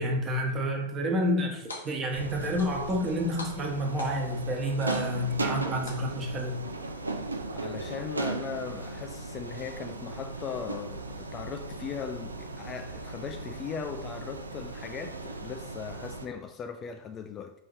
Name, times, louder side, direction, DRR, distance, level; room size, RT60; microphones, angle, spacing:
voice 1, 0.0-6.6, equal, 25° right, 1.1 m, -29 dB
sound 1, 1.7-2.2 2.6-3.1 3.4-4.4 4.9-5.4 5.9-6.4, left 2 dB, 75° left, 0.7 m, -43 dB
sound 2, 2.1-16.3, right 3 dB, 80° right, 0.4 m, -37 dB
voice 2, 7.5-17.5, left 6 dB, 25° left, 0.3 m, -38 dB
4.9 x 2.8 x 3.9 m
figure-of-eight pair, 90°, 0 cm